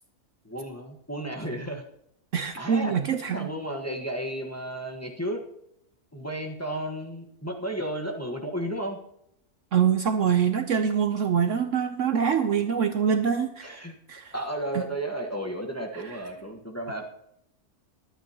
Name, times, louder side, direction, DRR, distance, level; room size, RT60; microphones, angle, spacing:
voice 1, 0.4-1.8 2.6-2.9 3.3-5.4 6.1-9.0 13.6-13.9 14.3-17.0, right 1 dB, 10° left, 1 dB, 1.2 m, -33 dB
voice 2, 2.3-3.5 9.7-13.8 14.1-14.3 14.7-14.8 16.0-16.2, right 7 dB, 60° right, 8 dB, 0.9 m, -25 dB
22.5 x 9.0 x 2.9 m, 0.76 s
omnidirectional pair, 1.6 m